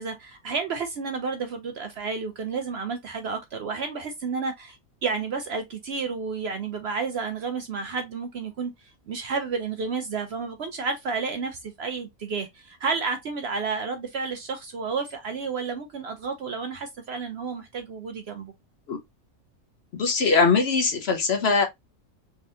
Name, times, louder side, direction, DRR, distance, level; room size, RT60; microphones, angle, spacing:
voice 1, 0.0-18.5, right 5 dB, 65° right, 0.7 m, -31 dB
voice 2, 19.9-21.7, left 4 dB, 55° left, 0.8 m, -21 dB
3.5 x 3.3 x 2.6 m
omnidirectional pair, 1.5 m